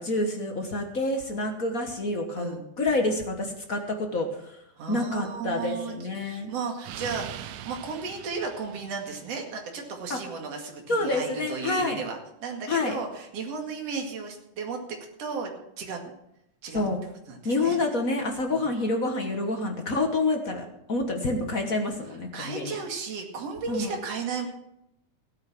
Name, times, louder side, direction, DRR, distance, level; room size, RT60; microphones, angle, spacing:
voice 1, 0.0-4.6 4.9-6.5 10.1-10.2 10.9-12.0 12.7-13.0 16.7-17.0 17.4-22.8 23.7-23.9, left 2 dB, 45° left, 3 dB, 1.2 m, -28 dB
voice 2, 4.8-6.0 6.2-15.5 15.8-16.0 16.6-16.9 17.3-17.8 18.5-18.6 22.3-24.5, right 5 dB, 55° right, 2 dB, 3.2 m, -34 dB
Explosion, 5.6-9.5, right 11 dB, 75° right, 1.8 m, -42 dB
16.0 x 8.9 x 6.0 m, 0.81 s
omnidirectional pair, 3.5 m